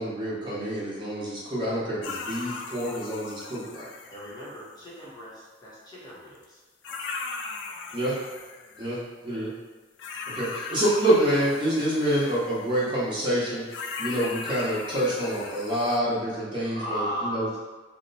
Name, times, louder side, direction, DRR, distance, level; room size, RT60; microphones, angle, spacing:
voice 1, 0.0-3.9 7.9-8.2 8.8-9.5 10.3-17.5, right 1 dB, 25° right, -8 dB, 0.9 m, -27 dB
sound 1, 2.0-4.9 6.4-6.5 6.8-8.9 10.0-12.9 13.7-16.0, left 4 dB, 80° left, 0.3 m, -38 dB
voice 2, 4.1-6.6 16.6-17.6, equal, 25° left, -7 dB, 0.7 m, -36 dB
2.8 x 2.1 x 4.0 m, 1.3 s
head